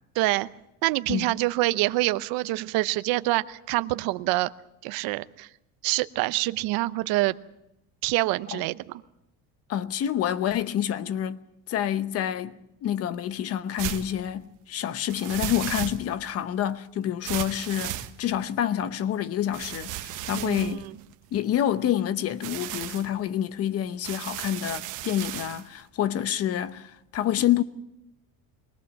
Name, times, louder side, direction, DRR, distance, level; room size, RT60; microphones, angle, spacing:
voice 1, 0.2-0.5 0.8-4.5 4.8-5.5 5.8-7.4 8.0-8.8 20.3-20.9, right 19 dB, 80° right, 0.8 m, -26 dB
voice 2, 9.7-11.4 11.7-20.9 21.3-27.6, left 11 dB, 40° left, 0.9 m, -28 dB
sound 1, 13.8-14.1 15.1-16.3 17.2-18.5 19.5-21.6 22.3-23.1 24.0-25.6, right 13 dB, 60° right, 1.3 m, -35 dB
23.5 x 18.0 x 7.4 m
cardioid pair, 160°, 35 cm